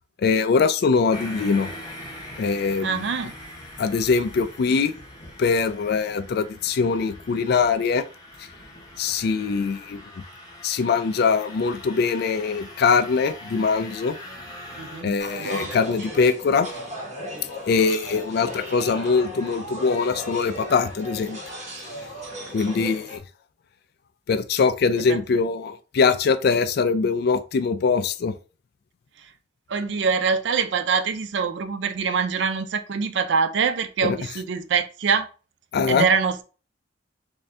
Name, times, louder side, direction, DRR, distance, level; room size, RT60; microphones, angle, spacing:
voice 1, 0.2-1.7 2.4-3.1 3.8-4.9 5.4-8.1 9.0-10.0 10.6-14.2 15.0-16.7 17.7-21.4 22.5-23.2 24.3-28.4 34.0-34.2 35.7-36.1, left 5 dB, 55° left, 0.3 m, -22 dB
sound 1, 1.1-15.0, left 1 dB, 20° left, 0.9 m, -42 dB
voice 2, 2.8-3.3 14.8-15.8 25.1-25.2 29.7-35.3 35.9-36.4, right 5 dB, 65° right, 0.4 m, -24 dB
ambient-coffee-shop-sounds, 15.2-23.2, equal, 40° right, 1.3 m, -36 dB
3.5 x 2.7 x 3.2 m
head